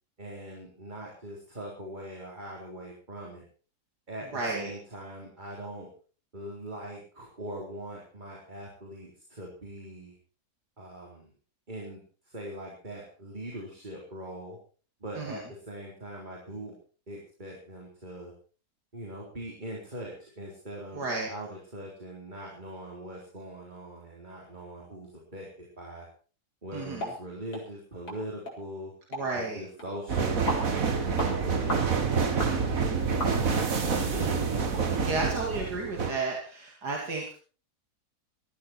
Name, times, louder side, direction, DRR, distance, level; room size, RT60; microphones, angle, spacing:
voice 1, 0.2-3.4 4.1-5.9 6.3-10.1 10.8-11.3 11.7-12.0 12.3-14.6 15.0-16.8 17.1-18.3 18.9-21.0 21.3-26.1 26.6-28.9 29.3-34.4 35.0-35.2, right 1 dB, 30° right, -2 dB, 4.1 m, -42 dB
voice 2, 4.3-4.7 15.2-15.4 20.9-21.3 26.7-27.1 29.1-29.6 34.2-34.6 35.0-37.3, right 3 dB, 90° right, 0 dB, 3.2 m, -32 dB
sound 1, 27.0-27.2 27.5-27.6 28.1-28.2 28.5-28.6 29.1-29.3 29.8-29.9 30.5-30.7 31.2-31.3 31.7-31.9 32.4-32.6 33.2-33.6 34.1-34.2 34.7-34.8 35.3-35.4, equal, 80° left, 5.1 m, -34 dB
sound 2, 30.1-36.1, right 5 dB, 60° right, 2.3 m, -27 dB
18.5 x 14.0 x 4.5 m, 0.39 s
omnidirectional pair, 1.7 m